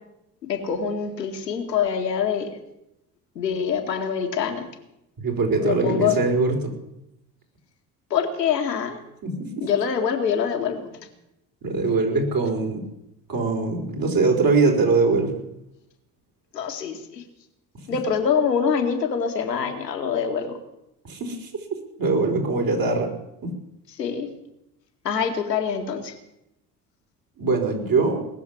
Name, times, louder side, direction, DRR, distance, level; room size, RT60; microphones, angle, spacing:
voice 1, 0.5-2.6 3.4-4.7 5.6-6.2 8.1-9.0 9.6-10.9 16.5-17.2 17.9-20.6 24.0-24.3 25.0-26.1, left 7 dB, 85° left, 4 dB, 1.9 m, -25 dB
voice 2, 5.2-6.7 9.2-9.7 11.6-12.9 13.3-15.3 21.0-23.1 23.4-23.5 27.4-28.2, right 3 dB, 45° right, 1 dB, 5.1 m, -22 dB
19.5 x 7.3 x 9.8 m, 0.85 s
hypercardioid pair, 60°, 48 cm